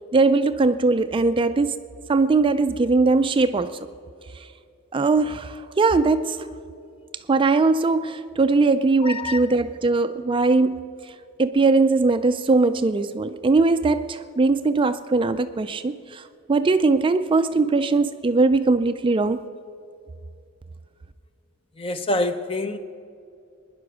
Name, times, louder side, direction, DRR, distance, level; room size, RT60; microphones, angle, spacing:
voice 1, 0.1-1.7 2.1-3.8 4.9-6.4 7.3-10.9 11.4-16.2 16.5-19.4, right 3 dB, 25° right, 0.4 m, -20 dB
voice 2, 9.0-9.4 21.8-22.8, left 2 dB, 30° left, 0.7 m, -26 dB
21.0 x 10.5 x 6.0 m
head